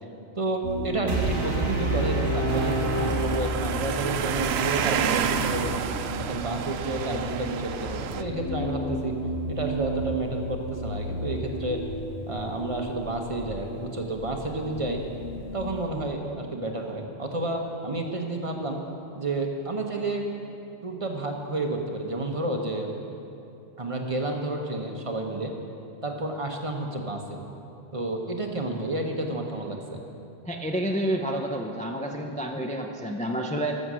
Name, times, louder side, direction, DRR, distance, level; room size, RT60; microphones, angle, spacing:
voice 1, 0.3-5.7 6.2-9.1 9.5-11.8 12.3-15.0 15.5-18.8 19.2-20.2 20.8-22.9 23.8-25.5 26.0-27.4 27.9-30.0, right 2 dB, 35° right, 2 dB, 0.9 m, -30 dB
sound 1, 0.6-15.9, left 1 dB, 90° left, 1.2 m, -35 dB
sound 2, 1.1-4.1, right 2 dB, 55° right, 1.7 m, -27 dB
sound 3, 2.5-8.2, right 8 dB, 80° right, 0.8 m, -29 dB
voice 2, 30.5-33.7, right 1 dB, 10° left, 2 dB, 0.4 m, -29 dB
13.5 x 6.4 x 6.2 m, 2.8 s
omnidirectional pair, 1.1 m